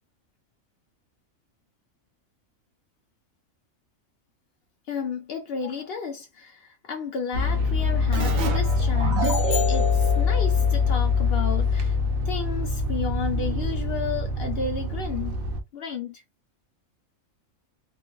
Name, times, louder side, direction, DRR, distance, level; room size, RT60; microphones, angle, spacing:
voice 1, 4.9-9.3 9.7-12.0 12.2-15.4 15.7-16.2, left 6 dB, 65° left, 0.6 m, -32 dB
sound 1, 7.3-15.6, left 4 dB, 65° right, 0.5 m, -24 dB
Keyboard (musical), 8.1-11.5, right 2 dB, 85° right, 1.0 m, -30 dB
sound 2, 9.2-10.7, left 9 dB, 85° left, 1.1 m, -35 dB
2.5 x 2.4 x 2.2 m
omnidirectional pair, 1.4 m